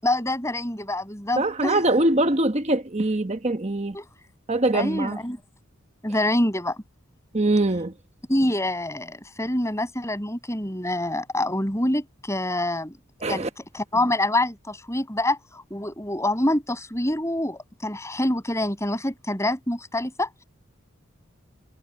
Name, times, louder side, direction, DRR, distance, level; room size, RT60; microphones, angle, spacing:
voice 1, 0.0-1.8 3.9-4.1 4.7-5.4 6.0-6.8 8.3-12.9 13.3-20.3, left 1 dB, 15° left, 7.6 m, -26 dB
voice 2, 1.4-4.0 4.5-5.2 7.3-7.9 13.2-13.5, right 2 dB, 30° right, 1.2 m, -23 dB
head